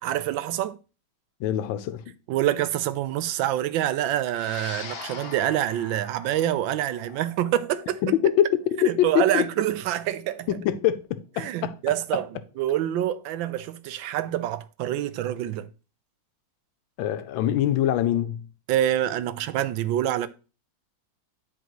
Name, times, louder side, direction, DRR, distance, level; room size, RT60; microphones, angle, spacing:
voice 1, 0.0-0.8 2.3-8.0 8.8-10.5 11.4-12.3 12.6-15.7 18.7-20.3, right 12 dB, 85° right, 1.3 m, -26 dB
voice 2, 1.4-2.1 8.0-9.4 10.5-11.7 17.0-18.5, left 11 dB, 85° left, 1.4 m, -24 dB
sound 1, 4.3-12.8, left 5 dB, 55° left, 1.3 m, -44 dB
10.0 x 4.6 x 3.0 m
omnidirectional pair, 2.1 m